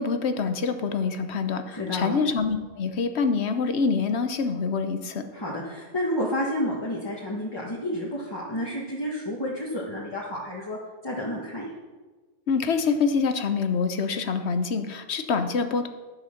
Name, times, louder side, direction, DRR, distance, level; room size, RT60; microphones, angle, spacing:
voice 1, 0.0-5.2 12.5-15.9, left 5 dB, 80° left, 8 dB, 1.1 m, -26 dB
voice 2, 1.7-2.2 5.3-10.8 11.0-11.7, left 1 dB, 25° left, -4 dB, 1.5 m, -30 dB
10.5 x 6.4 x 6.5 m, 1.3 s
omnidirectional pair, 1.1 m